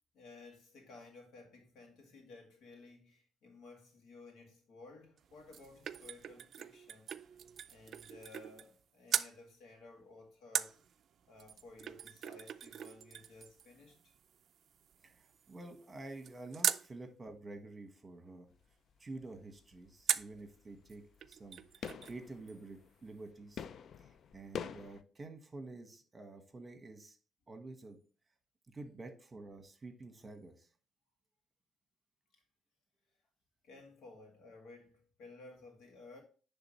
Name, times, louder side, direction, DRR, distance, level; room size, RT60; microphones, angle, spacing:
voice 1, 0.1-7.3 7.7-10.8 11.3-14.2 32.3-32.4 33.6-36.2, left 3 dB, 85° left, 2.1 m, -56 dB
sound 1, 5.2-8.8 9.1-9.4 10.5-16.9 20.1-20.4 20.9-21.0 21.2-22.2 22.5-22.6, right 8 dB, 60° right, 0.3 m, -40 dB
voice 2, 15.0-18.5 19.0-23.6 24.0-27.2 27.5-28.0 28.7-30.7, right 2 dB, 25° right, 1.3 m, -49 dB
sound 2, 18.5-18.9 19.2-25.0, left 7 dB, 60° left, 0.4 m, -47 dB
10.0 x 3.6 x 3.1 m
cardioid pair, 110°, 0 cm